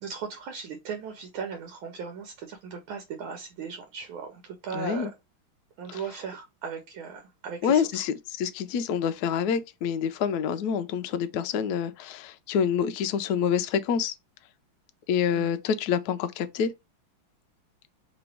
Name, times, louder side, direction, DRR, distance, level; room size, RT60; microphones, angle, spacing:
voice 1, 0.0-5.1 5.8-8.0 15.3-15.5, right 6 dB, 80° right, 1.6 m, -37 dB
voice 2, 4.7-5.1 5.9-6.0 7.6-14.1 15.1-16.7, left 7 dB, 85° left, 0.8 m, -27 dB
3.4 x 3.0 x 4.5 m
omnidirectional pair, 2.2 m